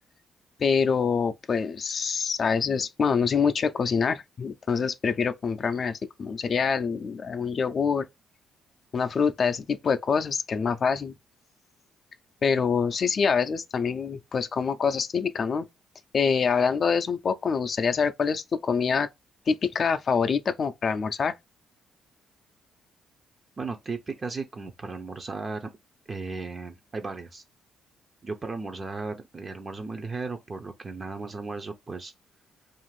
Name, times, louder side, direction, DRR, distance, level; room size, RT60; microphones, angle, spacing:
voice 1, 0.6-8.1 8.9-11.1 12.4-15.7 16.1-19.1 19.5-21.3, left 6 dB, 45° left, 0.4 m, -25 dB
voice 2, 23.6-25.7 26.1-27.4 28.2-32.1, right 3 dB, 35° right, 0.4 m, -35 dB
2.5 x 2.4 x 3.1 m
cardioid pair, 90°, 0 cm